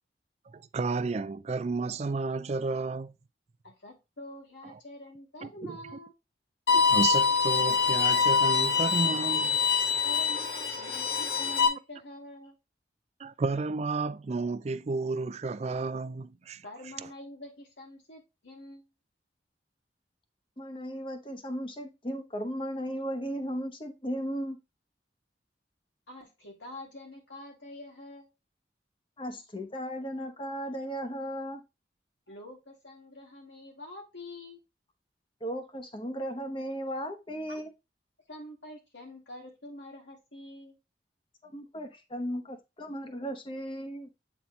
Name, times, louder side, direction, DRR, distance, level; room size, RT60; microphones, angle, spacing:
voice 1, 0.5-3.1 4.6-4.7 5.4-5.8 6.7-9.6 13.2-16.6, right 3 dB, 35° right, 0.4 m, -32 dB
voice 2, 3.6-6.1 10.0-12.6 16.6-18.8 26.1-28.3 32.3-34.6 37.5-37.6 38.3-40.8, left 1 dB, 85° left, 2.6 m, -46 dB
Bowed string instrument, 6.7-11.7, left 6 dB, 65° left, 1.5 m, -25 dB
voice 3, 20.6-24.6 29.2-31.6 35.4-37.7 41.4-44.1, equal, 30° left, 1.0 m, -36 dB
8.5 x 4.2 x 3.2 m
head